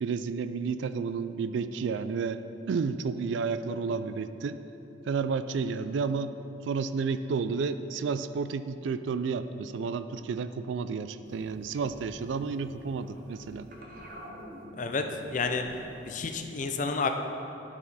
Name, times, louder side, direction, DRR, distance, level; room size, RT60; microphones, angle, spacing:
voice 1, 0.0-2.4 2.7-4.6 5.0-6.3 6.6-13.7, right 5 dB, 70° right, 12 dB, 0.3 m, -31 dB
sound 1, 11.2-16.4, equal, 50° right, 0.9 m, -48 dB
voice 2, 14.8-15.6 16.0-17.1, left 4 dB, 40° left, 6 dB, 0.5 m, -30 dB
11.5 x 4.9 x 4.1 m, 2.8 s
head